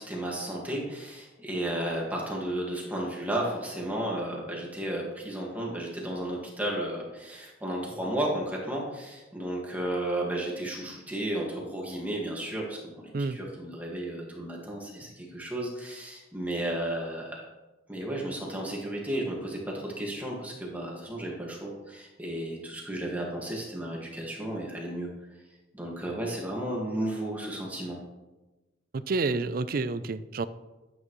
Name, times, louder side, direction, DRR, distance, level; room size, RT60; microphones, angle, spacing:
voice 1, 0.0-17.4 17.9-25.1 25.7-28.0, right 1 dB, 10° right, -3 dB, 1.8 m, -33 dB
voice 2, 28.9-30.5, right 3 dB, 50° right, 14 dB, 0.4 m, -29 dB
11.5 x 8.5 x 3.1 m, 1.1 s
head